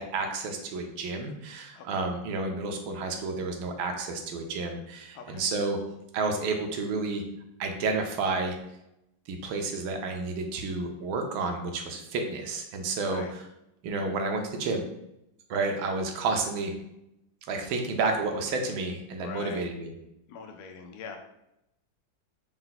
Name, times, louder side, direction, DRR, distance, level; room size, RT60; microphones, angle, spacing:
voice 1, 0.0-5.8 6.1-7.2 7.6-8.6 9.3-13.4 13.8-14.8 15.5-16.7 17.5-19.9, right 3 dB, 85° right, 4 dB, 1.4 m, -30 dB
voice 2, 1.8-2.1 5.1-5.5 12.9-13.3 19.2-19.7 20.3-21.2, left 6 dB, 75° left, 4 dB, 0.9 m, -42 dB
4.4 x 2.1 x 3.9 m, 0.84 s
omnidirectional pair, 2.2 m